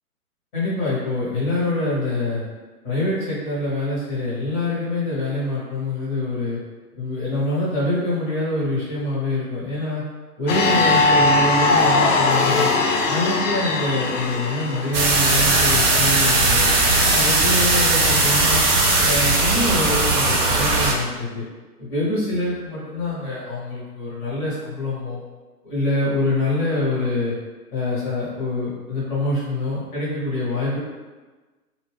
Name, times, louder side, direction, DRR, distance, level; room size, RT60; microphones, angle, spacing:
voice 1, 0.5-2.4 2.8-6.6 7.0-10.0 10.4-12.7 13.1-16.7 17.1-18.6 19.0-21.4 21.8-25.2 25.6-27.3 27.7-30.8, left 2 dB, 15° left, -9 dB, 0.6 m, -25 dB
sound 1, 10.5-15.1, left 3 dB, 55° left, 0.5 m, -19 dB
sound 2, 14.9-20.9, right 2 dB, 70° right, 0.8 m, -18 dB
2.5 x 2.2 x 3.1 m, 1.3 s
figure-of-eight pair, 130°, 46 cm